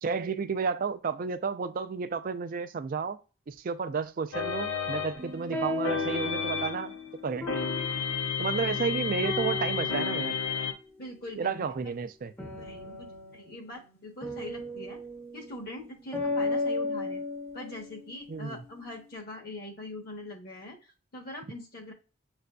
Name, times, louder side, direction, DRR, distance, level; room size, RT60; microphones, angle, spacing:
voice 1, 0.0-3.2 3.5-7.0 7.2-7.7 8.4-10.4 11.4-12.3 18.3-18.6, right 5 dB, 40° right, 0.3 m, -32 dB
sound 1, 4.3-7.0 7.5-10.7, left 6 dB, 85° left, 0.6 m, -32 dB
sound 2, 5.2-8.9 9.2-10.6 12.4-18.2, left 3 dB, 10° left, 0.6 m, -35 dB
voice 2, 11.0-11.7 12.5-15.0 15.3-17.2 17.5-21.9, left 1 dB, 45° left, 0.9 m, -43 dB
6.7 x 2.5 x 2.2 m
head